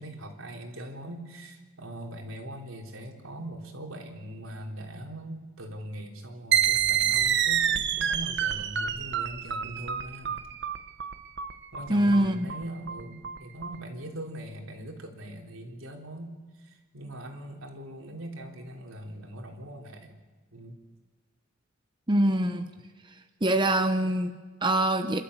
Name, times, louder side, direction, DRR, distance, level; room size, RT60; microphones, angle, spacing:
voice 1, 0.0-10.4 11.7-20.2 20.5-20.8, right 1 dB, 80° right, 2 dB, 3.6 m, -41 dB
sound 1, 6.5-13.8, right 9 dB, 55° right, 1.1 m, -27 dB
voice 2, 11.9-12.5 22.1-22.7 23.4-25.2, right 1 dB, 25° right, 7 dB, 0.9 m, -24 dB
28.5 x 13.0 x 8.1 m, 1.3 s
head